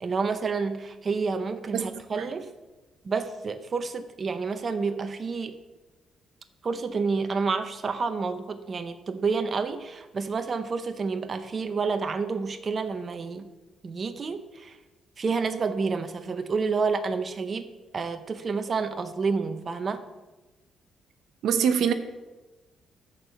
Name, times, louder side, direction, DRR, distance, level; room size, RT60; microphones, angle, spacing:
voice 1, 0.0-2.5 3.0-5.6 6.6-13.5 13.8-14.8 15.2-17.7 17.9-20.0, right 4 dB, 40° right, 9 dB, 0.7 m, -29 dB
voice 2, 21.4-21.9, right 7 dB, 75° right, 9 dB, 0.9 m, -22 dB
13.0 x 4.6 x 6.8 m, 1.2 s
cardioid pair, 90°, 0 cm